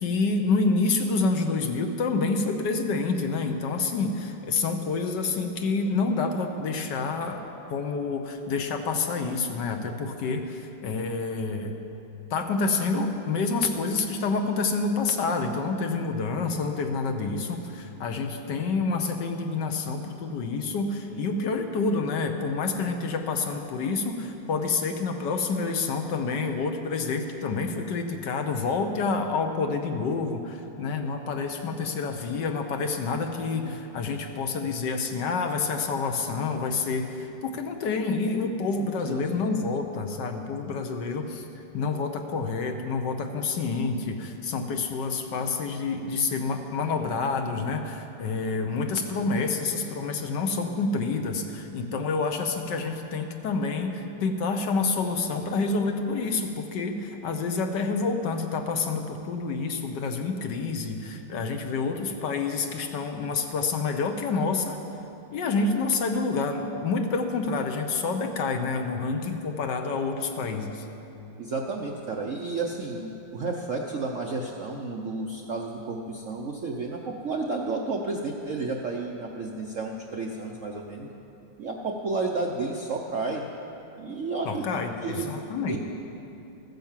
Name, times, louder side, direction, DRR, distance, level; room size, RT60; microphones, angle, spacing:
voice 1, 0.0-11.8 12.3-41.5 41.7-64.8 65.3-70.8 84.4-85.8, left 4 dB, 65° left, 5 dB, 1.4 m, -28 dB
voice 2, 33.4-33.8 39.1-39.2 71.4-81.1 81.6-83.4 84.0-85.8, right 3 dB, 60° right, 0 dB, 0.8 m, -32 dB
14.0 x 9.4 x 7.3 m, 2.9 s
omnidirectional pair, 2.2 m